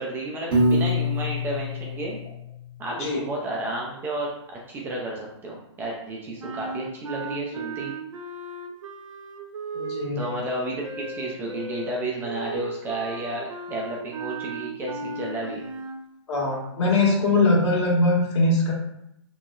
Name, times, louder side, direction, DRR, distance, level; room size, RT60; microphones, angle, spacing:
voice 1, 0.0-2.2 2.8-7.9 10.2-15.6, right 2 dB, 15° right, -2 dB, 0.3 m, -32 dB
Piano, 0.5-2.7, left 1 dB, 50° right, 0.8 m, -25 dB
voice 2, 2.9-3.2 9.7-10.2 16.3-18.7, left 2 dB, 70° left, -4 dB, 1.3 m, -22 dB
sound 1, 6.4-16.0, right 2 dB, 85° right, 0.4 m, -36 dB
2.9 x 2.0 x 2.3 m, 0.79 s
hypercardioid pair, 135°, 16 cm